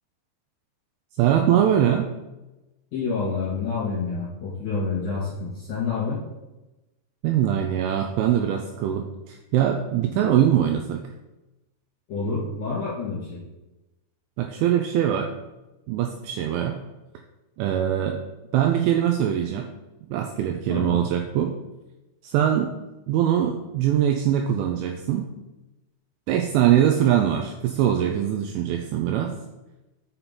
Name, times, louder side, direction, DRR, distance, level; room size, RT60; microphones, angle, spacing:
voice 1, 1.2-2.1 7.2-11.1 14.4-15.3 15.9-16.8 17.6-18.2 18.5-19.7 20.1-21.5 22.2-22.7 23.1-25.3 26.3-29.3, right 10 dB, 85° right, 4 dB, 2.8 m, -22 dB
voice 2, 2.9-6.2 12.1-13.4 20.7-21.0, left 4 dB, 45° left, -9 dB, 2.7 m, -28 dB
6.8 x 5.7 x 4.2 m, 1.0 s
omnidirectional pair, 5.9 m